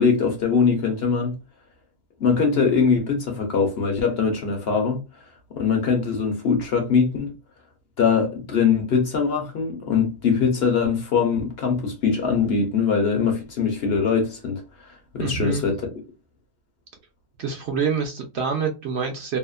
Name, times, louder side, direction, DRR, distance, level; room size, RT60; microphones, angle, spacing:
voice 1, 0.0-1.4 2.2-5.0 5.5-7.3 8.0-14.9 15.1-15.8, left 5 dB, 55° left, 0.9 m, -22 dB
voice 2, 15.2-15.6 17.4-19.4, right 5 dB, 60° right, 0.8 m, -26 dB
2.8 x 2.3 x 2.3 m
omnidirectional pair, 1.4 m